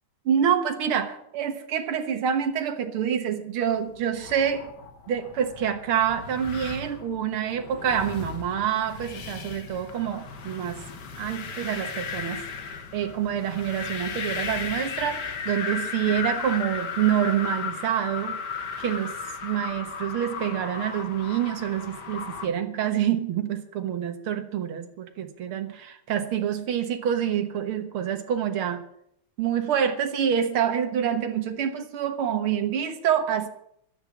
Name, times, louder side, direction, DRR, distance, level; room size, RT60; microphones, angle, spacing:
voice 1, 0.3-4.7 5.1-10.8 11.2-12.4 12.9-18.4 18.8-19.2 19.4-28.8 29.4-33.5, right 9 dB, 55° right, 7 dB, 1.8 m, -27 dB
sound 1, 4.0-22.5, left 6 dB, 55° left, 1.2 m, -35 dB
12.5 x 8.7 x 9.5 m, 0.72 s
omnidirectional pair, 3.5 m